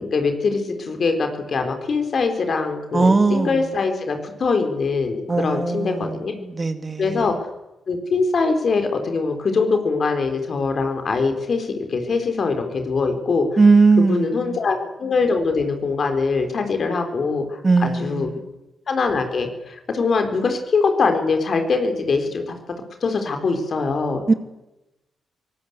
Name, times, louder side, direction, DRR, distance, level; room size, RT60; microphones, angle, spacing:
voice 1, 0.0-6.3 7.0-7.3 7.9-13.5 14.0-18.3 18.9-22.5 23.0-24.2, left 4 dB, 55° left, 6 dB, 4.3 m, -22 dB
voice 2, 2.9-3.5 5.3-7.2 13.6-14.6 17.6-18.4 24.3-24.4, right 4 dB, 35° right, 9 dB, 2.4 m, -19 dB
23.0 x 18.5 x 8.2 m, 0.97 s
hypercardioid pair, 40°, 0 cm